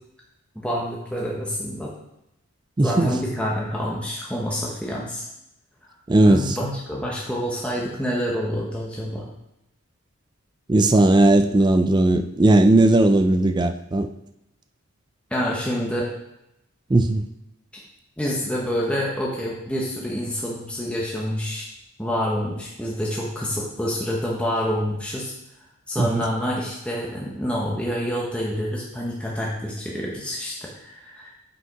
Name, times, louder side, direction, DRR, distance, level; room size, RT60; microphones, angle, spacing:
voice 1, 0.5-1.9 2.8-5.3 6.3-9.3 15.3-16.1 18.2-21.7 22.0-25.3 25.9-31.3, equal, 5° left, -4 dB, 0.9 m, -27 dB
voice 2, 2.8-3.1 6.1-6.6 10.7-14.1 16.9-17.3 26.0-26.2, right 2 dB, 20° right, 8 dB, 0.3 m, -17 dB
6.3 x 5.1 x 4.6 m, 0.85 s
head